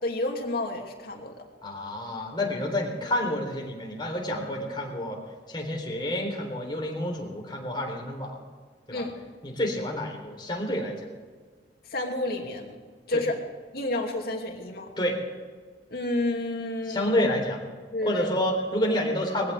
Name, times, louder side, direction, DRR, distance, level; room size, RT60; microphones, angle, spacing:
voice 1, 0.0-1.4 8.9-9.2 11.9-12.8 13.1-13.4 13.7-14.9 15.9-17.2 17.9-18.3, left 2 dB, 60° left, 0 dB, 2.8 m, -30 dB
voice 2, 1.6-5.2 5.5-8.4 8.9-9.0 9.4-11.1 13.1-13.2 15.0-15.2 16.9-17.6 18.0-19.5, left 1 dB, 25° left, 0 dB, 3.8 m, -29 dB
21.5 x 16.0 x 3.6 m, 1.5 s
head